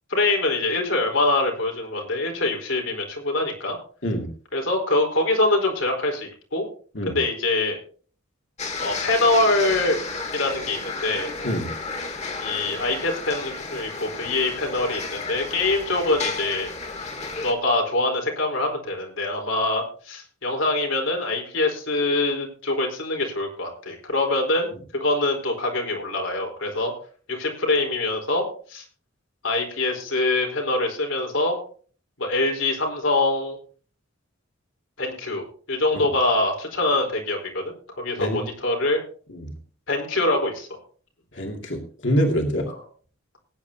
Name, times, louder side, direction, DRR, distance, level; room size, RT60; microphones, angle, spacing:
voice 1, 0.1-3.8 4.5-6.6 7.1-7.8 8.8-10.0 10.3-11.3 12.4-16.7 17.4-26.9 27.3-28.4 28.7-28.8 29.4-31.6 32.2-33.6 35.0-39.0 39.9-40.7, left 2 dB, 80° left, 2 dB, 4.2 m, -24 dB
sound 1, 8.6-17.5, left 3 dB, 35° left, 1.9 m, -32 dB
voice 2, 41.3-42.7, equal, 60° left, 2 dB, 2.4 m, -25 dB
20.0 x 9.7 x 2.8 m, 0.43 s
head